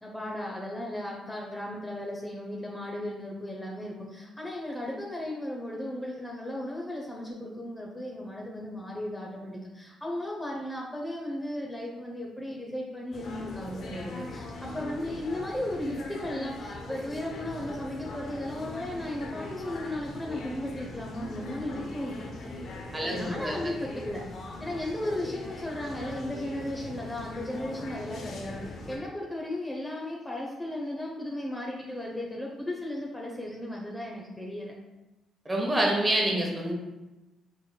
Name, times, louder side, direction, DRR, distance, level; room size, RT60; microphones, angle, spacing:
voice 1, 0.0-22.1 23.0-24.2 24.6-28.6 28.9-34.7, left 1 dB, 10° left, -2 dB, 0.7 m, -35 dB
sound 1, 13.1-29.0, left 2 dB, 65° left, 0.8 m, -41 dB
voice 2, 22.9-23.7 35.4-36.7, right 1 dB, 20° right, 0 dB, 1.1 m, -27 dB
4.6 x 4.3 x 2.2 m, 1.1 s
cardioid pair, 90°, 0 cm